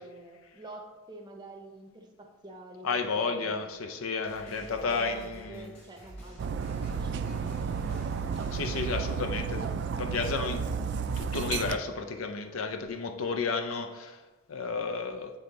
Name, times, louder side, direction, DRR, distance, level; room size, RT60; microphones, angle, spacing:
voice 1, 0.0-3.6 4.6-7.7, right 2 dB, 20° right, 2 dB, 0.6 m, -48 dB
voice 2, 2.8-5.8 8.5-10.6 11.2-14.2 14.5-15.3, left 4 dB, 75° left, 6 dB, 0.5 m, -32 dB
sound 1, 4.2-9.5, right 1 dB, 30° left, 1.6 m, -49 dB
Dog, 6.4-11.8, right 6 dB, 55° right, 0.3 m, -32 dB
8.4 x 3.3 x 3.9 m, 1.2 s
head